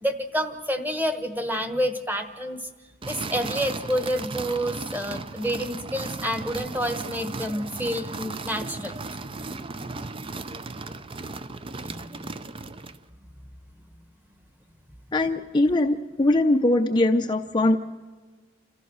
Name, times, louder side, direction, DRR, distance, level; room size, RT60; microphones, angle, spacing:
voice 1, 0.0-2.7 3.1-8.9 11.8-12.4, equal, 10° right, 8 dB, 1.2 m, -29 dB
sound 1, 3.0-13.0, right 3 dB, 25° right, 0.5 m, -36 dB
voice 2, 15.1-17.8, left 2 dB, 25° left, 4 dB, 0.5 m, -21 dB
29.0 x 14.0 x 6.3 m, 1.4 s
head